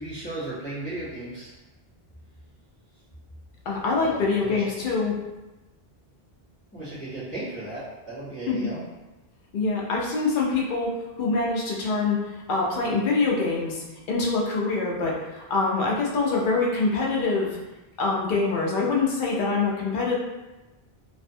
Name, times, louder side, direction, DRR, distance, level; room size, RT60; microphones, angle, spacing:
voice 1, 0.0-1.5 4.0-4.7 6.7-8.8, right 2 dB, 10° left, -13 dB, 0.8 m, -35 dB
voice 2, 3.7-5.2 8.5-8.6 9.5-12.2 12.5-17.5 18.0-20.2, left 3 dB, 60° left, -3 dB, 0.7 m, -25 dB
2.5 x 2.2 x 2.6 m, 1.1 s
omnidirectional pair, 1.1 m